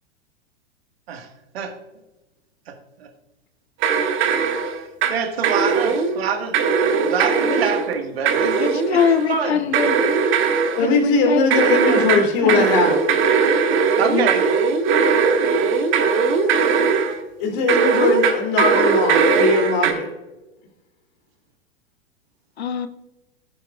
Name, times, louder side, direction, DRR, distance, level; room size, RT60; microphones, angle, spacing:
voice 1, 2.7-3.1 5.1-6.6 7.0-8.6 9.3-9.6 14.0-14.5, right 6 dB, 70° right, 6 dB, 1.7 m, -25 dB
sound 1, 3.8-5.2 5.4-6.2 6.5-7.9 8.3-9.3 9.7-10.9 11.5-17.2 17.7-19.9, right 5 dB, 40° right, 1.7 m, -19 dB
voice 2, 8.6-10.0 10.8-12.7 14.1-14.3 22.6-22.9, left 7 dB, 80° left, 11 dB, 0.8 m, -23 dB
voice 3, 10.7-13.0 17.4-20.1, left 3 dB, 50° left, 2 dB, 3.0 m, -20 dB
16.0 x 9.8 x 2.4 m, 1.0 s
hypercardioid pair, 100°, 32 cm